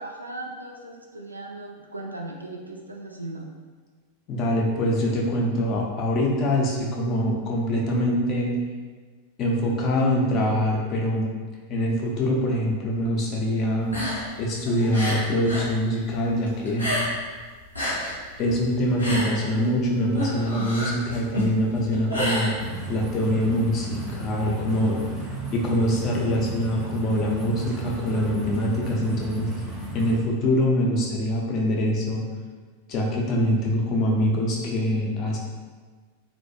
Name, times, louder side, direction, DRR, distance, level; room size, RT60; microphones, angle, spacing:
voice 1, 0.0-3.4, right 2 dB, 85° right, 0 dB, 0.3 m, -37 dB
voice 2, 4.3-8.5 9.4-11.3 11.7-13.9 14.4-17.0 18.4-22.5 22.9-25.0 25.5-29.5 29.9-32.2 32.9-35.4, equal, 35° left, -2 dB, 0.5 m, -24 dB
sound 1, 13.8-15.7 16.0-17.3 17.6-23.1, equal, 90° left, 0.7 m, -29 dB
sound 2, 22.6-30.2, right 2 dB, 25° right, 0.5 m, -34 dB
2.3 x 2.1 x 2.6 m, 1.5 s
figure-of-eight pair, 90°, 0 cm